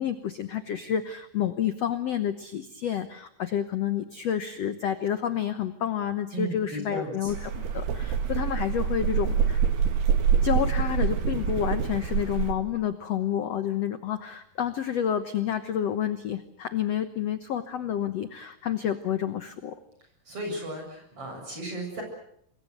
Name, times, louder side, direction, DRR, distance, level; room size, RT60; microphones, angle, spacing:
voice 1, 0.0-9.6 10.4-19.8, left 9 dB, 70° left, 10 dB, 1.6 m, -29 dB
voice 2, 6.3-7.3 20.3-22.0, right 2 dB, 35° right, 2 dB, 8.2 m, -35 dB
sound 1, 7.3-12.5, right 7 dB, 85° right, 4.0 m, -26 dB
26.5 x 22.0 x 8.1 m, 0.72 s
omnidirectional pair, 4.4 m